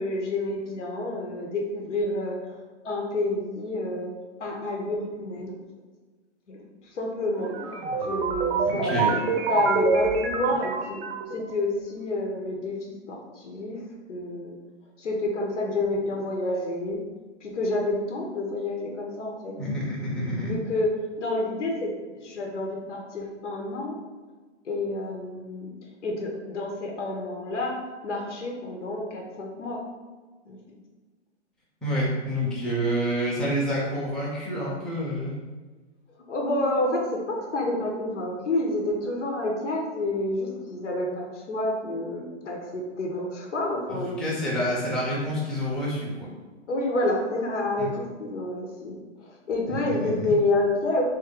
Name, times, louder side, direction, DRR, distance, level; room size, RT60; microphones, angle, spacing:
voice 1, 0.0-2.6 2.8-4.1 4.4-5.6 6.5-6.6 6.9-7.5 8.0-9.2 9.5-11.0 11.3-13.8 14.1-14.5 15.0-17.0 17.4-19.5 20.4-20.9 21.2-24.0 24.6-25.7 26.0-29.8 30.5-30.6 36.3-44.4 46.7-51.0, left 2 dB, 80° left, 0 dB, 1.0 m, -29 dB
sound 1, 7.4-11.5, right 4 dB, 55° right, 0.6 m, -26 dB
voice 2, 8.7-9.1 19.6-20.6 31.8-35.3 43.9-46.3 47.8-47.9 49.6-50.3, equal, ahead, -8 dB, 0.6 m, -28 dB
3.1 x 2.7 x 3.7 m, 1.3 s
hypercardioid pair, 125°, 35 cm